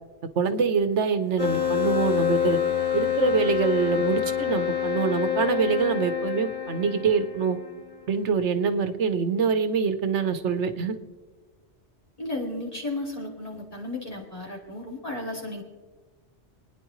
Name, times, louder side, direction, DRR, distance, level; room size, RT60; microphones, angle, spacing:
voice 1, 0.4-2.6 2.9-7.6 8.1-11.0, right 5 dB, 80° right, 9 dB, 1.2 m, -25 dB
sound 1, 1.4-7.8, left 9 dB, 10° right, 3.2 m, -27 dB
voice 2, 12.2-15.6, left 2 dB, 30° left, -2 dB, 3.0 m, -34 dB
28.0 x 10.0 x 3.2 m, 1.3 s
omnidirectional pair, 1.2 m